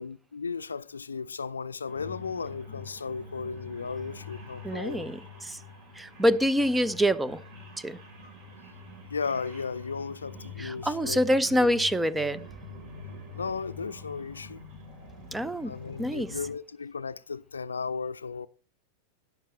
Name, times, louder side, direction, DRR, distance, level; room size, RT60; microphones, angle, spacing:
voice 1, 0.0-5.2 9.1-11.2 11.5-11.8 13.3-14.6 15.6-18.5, left 5 dB, 75° left, 0.4 m, -35 dB
sound 1, 1.9-16.5, left 3 dB, 45° right, 3.6 m, -45 dB
voice 2, 4.6-5.6 6.0-7.4 7.8-8.0 10.6-12.5 15.3-15.7 16.0-16.3, equal, 5° right, 0.5 m, -26 dB
13.0 x 9.2 x 3.1 m
figure-of-eight pair, 90°, 0 cm